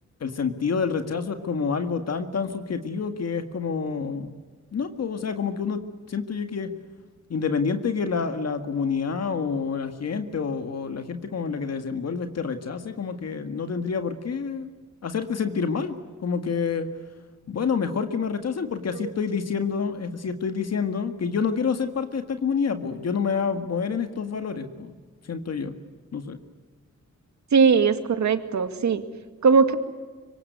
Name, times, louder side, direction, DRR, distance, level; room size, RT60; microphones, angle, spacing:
voice 1, 0.2-4.4 4.7-5.8 6.1-6.7 7.3-14.7 15.0-15.9 16.2-16.9 17.5-25.0 25.2-25.8 26.1-26.4, left 5 dB, 55° left, 8 dB, 1.9 m, -28 dB
voice 2, 27.5-29.0 29.4-29.8, right 5 dB, 65° right, 9 dB, 2.1 m, -19 dB
25.0 x 24.5 x 9.4 m, 1.4 s
wide cardioid pair, 165°, 30 cm